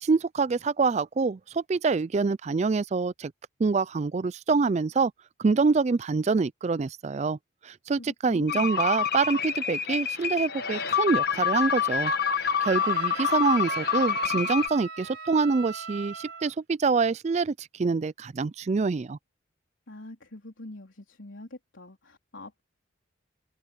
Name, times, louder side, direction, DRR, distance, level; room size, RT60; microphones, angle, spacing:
voice 1, 0.0-3.3 3.6-5.1 5.4-7.4 7.6-12.1 12.4-19.2, right 4 dB, 35° right, 0.3 m, -26 dB
voice 2, 8.0-8.9 19.9-22.6, left 1 dB, 75° left, 3.7 m, -45 dB
sound 1, 8.5-14.7, left 7 dB, 50° left, 1.5 m, -27 dB
Wind instrument woodwind instrument, 12.6-16.5, right 5 dB, 55° right, 5.9 m, -39 dB
head